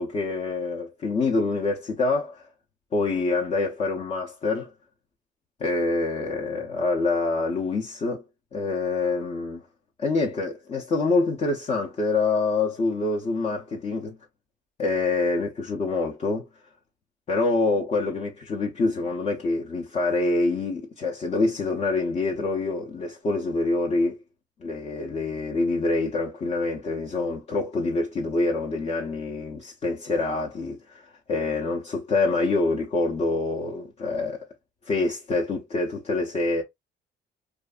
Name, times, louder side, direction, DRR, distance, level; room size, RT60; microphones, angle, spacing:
voice 1, 0.0-2.5 2.9-4.7 5.6-8.2 8.5-9.6 10.0-14.2 14.8-16.5 17.3-24.2 24.6-30.8 31.3-34.4 34.9-36.6, left 3 dB, 40° left, 0.6 m, -26 dB
2.6 x 2.4 x 2.3 m
cardioid pair, 110°, 17 cm